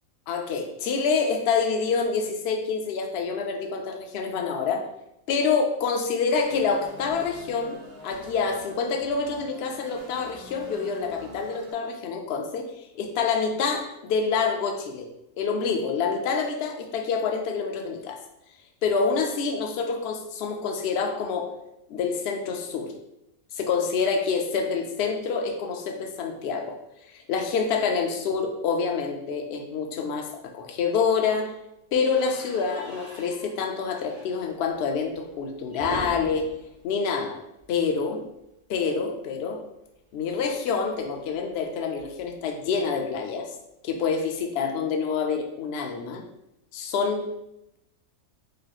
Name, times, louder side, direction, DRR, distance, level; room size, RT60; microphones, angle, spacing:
voice 1, 0.3-4.8 5.3-15.1 15.4-18.2 18.8-21.5 21.9-22.9 23.5-26.8 27.1-31.5 31.9-36.5 36.8-37.4 37.7-38.2 38.7-39.6 40.1-43.5 43.8-46.2 46.7-47.3, left 5 dB, 65° left, 4 dB, 0.6 m, -27 dB
sound 1, 6.4-11.7, equal, 60° right, 1.5 m, -46 dB
sound 2, 31.9-38.0 38.3-38.5 38.7-38.8 40.1-42.4, right 1 dB, 30° right, 0.9 m, -44 dB
4.8 x 3.0 x 2.3 m, 0.84 s
omnidirectional pair, 1.6 m